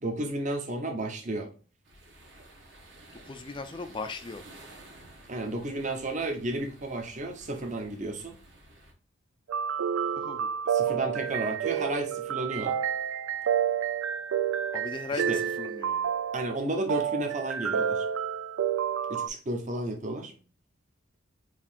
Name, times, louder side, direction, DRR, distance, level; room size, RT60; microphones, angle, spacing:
voice 1, 0.0-1.5 5.3-8.4 10.7-12.8 15.3-15.4 16.3-18.1 19.1-20.3, right 2 dB, 35° right, 0.7 m, -32 dB
sound 1, 1.8-8.9, right 1 dB, 60° right, 1.1 m, -52 dB
voice 2, 3.1-4.4 10.0-10.5 14.7-16.1, left 3 dB, 25° left, 0.3 m, -38 dB
sound 2, 9.5-19.3, right 8 dB, 85° right, 0.4 m, -29 dB
4.6 x 2.7 x 3.5 m
head